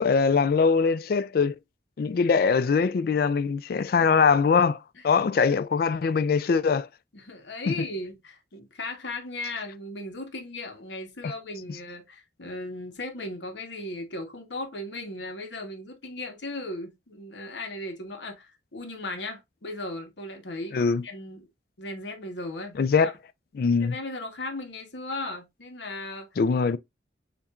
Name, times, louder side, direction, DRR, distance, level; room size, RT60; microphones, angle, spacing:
voice 1, 0.0-1.5 2.0-4.8 5.0-6.9 7.7-7.8 20.7-21.0 22.8-23.1 23.6-23.9 26.4-26.8, left 5 dB, 50° left, 0.3 m, -22 dB
voice 2, 3.7-4.1 7.1-21.5 21.8-23.1 23.8-26.3, left 2 dB, 75° left, 1.1 m, -37 dB
7.0 x 2.6 x 2.4 m
head